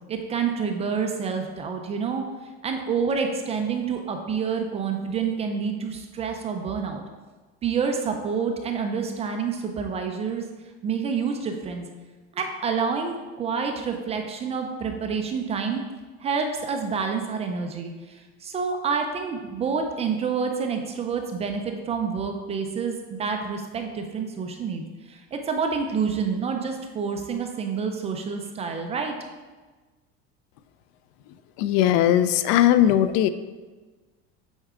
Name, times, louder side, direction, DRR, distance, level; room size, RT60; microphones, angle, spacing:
voice 1, 0.1-2.2 2.6-7.0 7.6-10.5 10.8-11.9 12.3-15.8 16.2-29.1, right 5 dB, 20° right, 4 dB, 0.4 m, -28 dB
voice 2, 31.6-33.3, left 11 dB, 65° left, 12 dB, 0.5 m, -19 dB
8.0 x 4.5 x 3.7 m, 1.3 s
cardioid pair, 165°, 30 cm